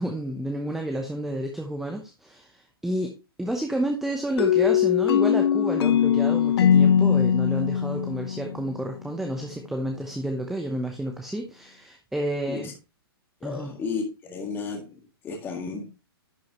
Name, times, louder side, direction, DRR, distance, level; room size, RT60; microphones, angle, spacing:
voice 1, 0.0-3.1 3.4-12.7 13.4-13.7, right 1 dB, ahead, 0.8 m, -30 dB
sound 1, 4.4-9.1, left 9 dB, 80° left, 0.4 m, -21 dB
voice 2, 13.4-15.8, left 5 dB, 15° left, 1.8 m, -33 dB
11.0 x 5.1 x 2.9 m
hypercardioid pair, 145°, 13 cm